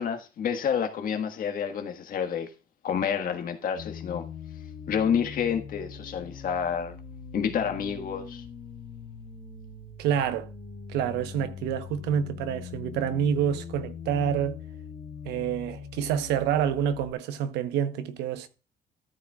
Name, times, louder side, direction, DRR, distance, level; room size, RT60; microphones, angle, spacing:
voice 1, 0.0-2.5 2.8-4.2 4.9-7.0 7.3-8.4, left 7 dB, 55° left, 1.6 m, -29 dB
continuous glide JC Risset, 3.8-17.1, left 6 dB, 85° left, 3.3 m, -42 dB
voice 2, 10.0-10.5 10.9-14.6 15.2-18.5, right 9 dB, 85° right, 1.0 m, -27 dB
13.5 x 8.8 x 2.4 m
cardioid pair, 110°, 17 cm